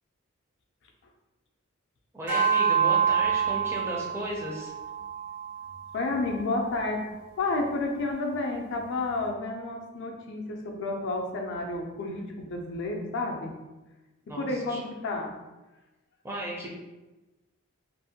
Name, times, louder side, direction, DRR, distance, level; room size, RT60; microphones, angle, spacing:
voice 1, 2.1-4.7 14.3-14.8 16.2-16.7, right 1 dB, 10° right, -2 dB, 0.4 m, -35 dB
sound 1, 2.3-6.9, right 7 dB, 55° right, 0.6 m, -28 dB
voice 2, 5.9-7.1 7.4-13.6 14.3-15.4, left 2 dB, 60° left, 2 dB, 0.4 m, -31 dB
2.5 x 2.1 x 2.7 m, 1.1 s
head